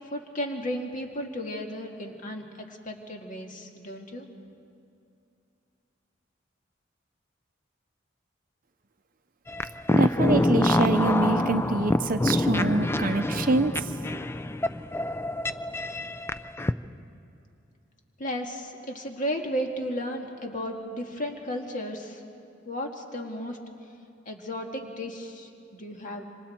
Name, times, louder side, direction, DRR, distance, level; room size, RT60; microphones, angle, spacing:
voice 1, 0.1-4.3 18.2-22.2 22.7-23.6 24.3-26.3, equal, 45° left, 2 dB, 2.0 m, -34 dB
sound 1, 9.5-16.7, left 1 dB, 15° left, 0.4 m, -26 dB
voice 2, 9.9-13.9, right 3 dB, 45° right, 9 dB, 0.7 m, -26 dB
26.5 x 26.0 x 4.5 m, 2.6 s
head